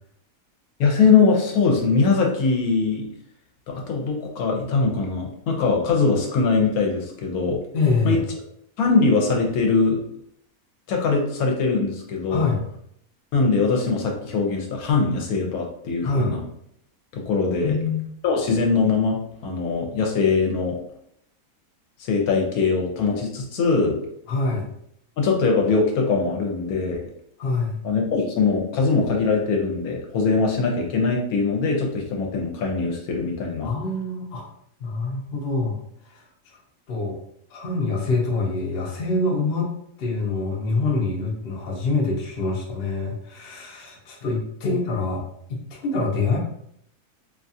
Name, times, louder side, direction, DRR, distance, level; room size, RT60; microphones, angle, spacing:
voice 1, 0.8-3.1 3.7-7.6 8.0-8.2 8.8-10.0 10.9-12.5 13.3-16.4 17.1-17.8 18.2-20.8 22.0-24.0 25.2-27.0 27.8-33.7 44.6-44.8, left 4 dB, 75° left, 1 dB, 1.1 m, -22 dB
voice 2, 7.7-8.2 12.3-12.6 16.0-16.3 17.6-18.1 24.3-24.6 27.4-27.8 33.6-34.4 34.8-35.8 36.1-36.2 36.9-37.2 37.5-39.7 40.0-45.2 45.5-46.4, left 3 dB, 55° left, -1 dB, 0.7 m, -25 dB
2.7 x 2.3 x 2.6 m, 0.71 s
omnidirectional pair, 1.6 m